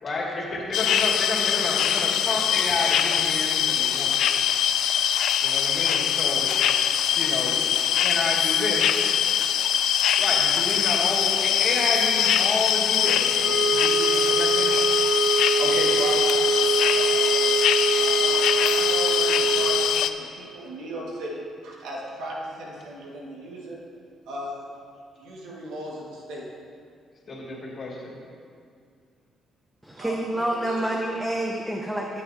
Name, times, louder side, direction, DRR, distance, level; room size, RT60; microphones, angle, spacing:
voice 1, 0.0-4.1 5.4-6.5 7.2-7.6 7.9-9.0 10.1-14.8 27.3-28.1, left 2 dB, 45° left, -3 dB, 2.3 m, -30 dB
sound 1, 0.7-20.1, left 9 dB, 80° left, 0.3 m, -23 dB
sound 2, 13.0-20.0, right 4 dB, 50° right, 0.9 m, -24 dB
voice 2, 15.6-17.5 18.0-23.8 24.3-24.6 25.2-26.5 30.0-30.1 30.6-30.8, right 1 dB, 90° right, -3 dB, 1.8 m, -36 dB
voice 3, 29.8-32.2, right 1 dB, 10° right, 1 dB, 0.7 m, -28 dB
14.5 x 8.0 x 2.8 m, 2.2 s
cardioid pair, 90°, 0 cm